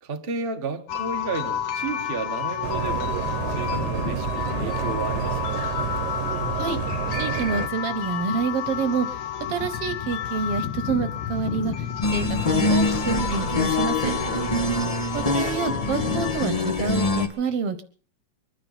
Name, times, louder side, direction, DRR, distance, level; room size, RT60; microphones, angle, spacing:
voice 1, 0.0-3.2 3.5-5.7 14.2-14.7, right 4 dB, 35° right, 0.9 m, -33 dB
sound 1, 0.9-16.5, left 9 dB, 75° left, 2.7 m, -30 dB
sound 2, 2.6-7.7, right 11 dB, 80° right, 2.4 m, -29 dB
voice 2, 7.2-9.1 9.5-11.9 12.1-14.1 15.1-17.8, right 5 dB, 60° right, 1.9 m, -28 dB
sound 3, 12.0-17.3, left 2 dB, 40° left, 0.5 m, -24 dB
24.0 x 10.5 x 5.5 m
omnidirectional pair, 3.4 m